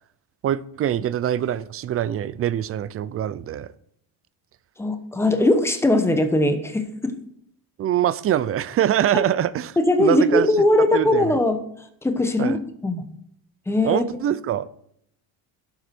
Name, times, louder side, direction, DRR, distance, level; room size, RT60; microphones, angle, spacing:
voice 1, 0.4-3.7 7.8-10.5 10.8-11.4 12.4-12.6 13.8-14.7, right 11 dB, 35° right, 0.4 m, -24 dB
voice 2, 4.8-7.1 9.1-9.2 9.8-11.6 12.0-12.6 12.8-13.1 13.7-14.2, left 1 dB, 5° left, 0.9 m, -20 dB
11.0 x 7.8 x 4.4 m
cardioid pair, 160°, 46 cm